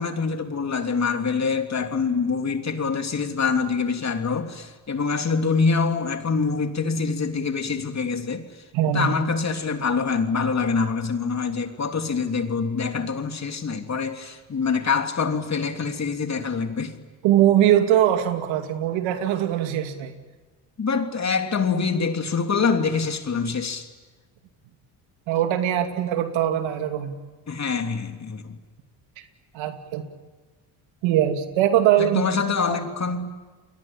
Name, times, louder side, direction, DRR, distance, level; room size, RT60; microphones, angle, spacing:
voice 1, 0.0-8.5 8.9-17.0 20.8-23.9 27.5-28.6 32.0-33.4, left 5 dB, 35° left, 3.1 m, -25 dB
voice 2, 8.7-9.1 17.2-20.2 25.3-27.2 29.2-29.3 29.5-30.0 31.0-32.2 32.7-32.8, right 11 dB, 80° right, 2.6 m, -21 dB
29.5 x 22.0 x 9.0 m
supercardioid pair, 80°, 45 cm